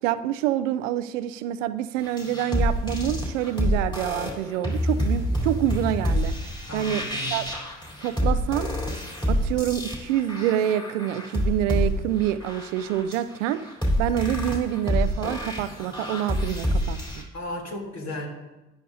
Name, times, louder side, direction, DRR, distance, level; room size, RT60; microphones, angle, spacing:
voice 1, 0.0-6.3 6.7-7.0 7.3-7.5 8.0-8.7 9.3-17.2, right 11 dB, 80° right, 13 dB, 0.5 m, -27 dB
sound 1, 2.0-17.2, equal, 10° left, 3.5 m, -27 dB
voice 2, 6.7-7.3 17.3-18.3, left 1 dB, 45° left, 0 dB, 3.2 m, -34 dB
13.5 x 10.0 x 2.7 m, 1.1 s
hypercardioid pair, 50°, 37 cm